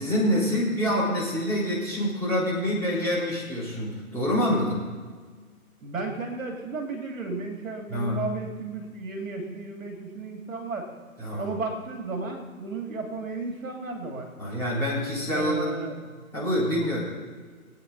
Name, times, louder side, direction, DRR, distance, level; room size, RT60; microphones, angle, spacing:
voice 1, 0.0-4.8 7.9-8.3 11.2-11.4 14.4-15.7 16.3-17.0, equal, 5° left, -11 dB, 4.1 m, -26 dB
voice 2, 5.8-10.9 11.4-14.3 15.3-16.2, right 3 dB, 60° right, 2 dB, 2.8 m, -34 dB
22.0 x 9.4 x 4.2 m, 1.5 s
figure-of-eight pair, 145°, 44 cm